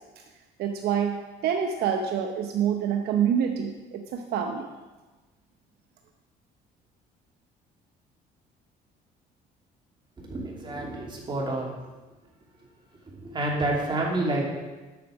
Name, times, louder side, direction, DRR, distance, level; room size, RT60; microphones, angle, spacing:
voice 1, 0.6-4.7, right 8 dB, 70° right, 4 dB, 0.8 m, -27 dB
voice 2, 10.2-11.7 13.1-14.4, right 2 dB, 30° right, -2 dB, 2.8 m, -29 dB
8.4 x 6.0 x 7.1 m, 1.2 s
cardioid pair, 110°, 17 cm